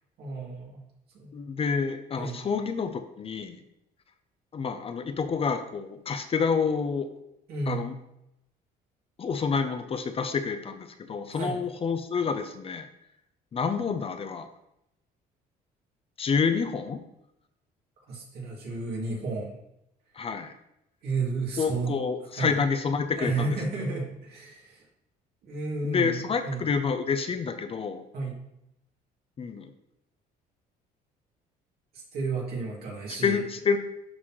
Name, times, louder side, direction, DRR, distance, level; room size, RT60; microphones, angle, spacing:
voice 1, 0.2-0.8 1.1-1.4 2.2-2.4 7.5-7.9 11.3-11.6 18.1-19.6 21.0-22.0 22.4-22.5 23.1-24.8 25.4-26.2 26.4-26.6 28.1-28.4 32.1-33.4, right 3 dB, 70° right, -3 dB, 2.7 m, -32 dB
voice 2, 1.3-3.6 4.5-7.1 7.7-7.9 9.2-12.9 13.5-14.5 16.2-17.0 20.2-20.5 21.6-23.6 25.8-28.0 29.4-29.7 33.2-33.8, left 5 dB, 35° left, 9 dB, 0.6 m, -28 dB
12.0 x 4.1 x 3.1 m, 0.84 s
cardioid pair, 110°, 17 cm